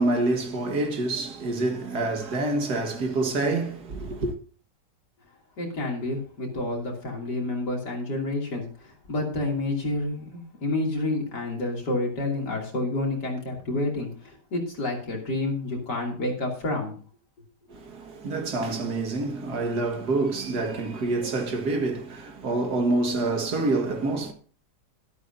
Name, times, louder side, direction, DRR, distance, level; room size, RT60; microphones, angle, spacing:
voice 1, 0.0-4.3 17.7-24.3, right 2 dB, 70° right, 2.2 m, -27 dB
voice 2, 5.6-17.0, left 2 dB, 75° left, 3.5 m, -29 dB
12.5 x 12.0 x 2.7 m
omnidirectional pair, 1.8 m